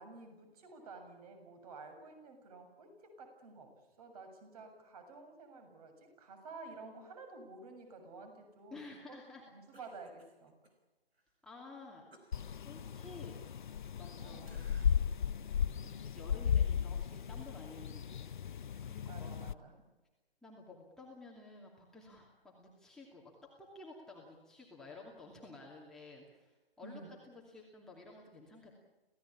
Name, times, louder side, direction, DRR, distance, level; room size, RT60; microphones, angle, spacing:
voice 1, 0.0-3.7 4.0-8.8 9.5-10.5 14.2-14.5 19.1-19.7 26.8-27.1, right 3 dB, 40° right, 6 dB, 7.2 m, -51 dB
voice 2, 8.7-9.4 11.4-12.1 12.6-13.4 14.0-14.5 15.8-18.3 18.8-19.6 20.4-23.2 23.6-28.8, left 3 dB, ahead, -4 dB, 2.6 m, -53 dB
Cough, 9.7-10.8 11.1-11.3 12.1-14.2 14.4-15.2 15.6-15.8, right 1 dB, 90° right, 5.1 m, -63 dB
sound 1, 12.3-19.5, left 8 dB, 50° left, 0.7 m, -35 dB
27.5 x 17.0 x 8.6 m, 1.1 s
figure-of-eight pair, 150°, 30 cm